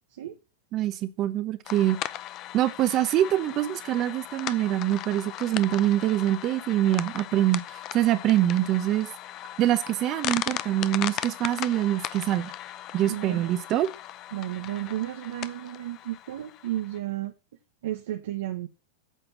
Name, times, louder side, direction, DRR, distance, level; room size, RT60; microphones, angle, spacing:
voice 1, 0.7-2.0 2.5-7.6 7.9-9.1 9.6-12.5 12.9-13.9, right 13 dB, 40° right, 0.9 m, -24 dB
sound 1, 1.7-17.0, left 13 dB, 45° left, 0.6 m, -37 dB
voice 2, 13.1-13.5 14.3-17.3 17.8-18.7, right 13 dB, 75° right, 0.9 m, -33 dB
8.3 x 4.5 x 7.2 m
hypercardioid pair, 115°, 0 cm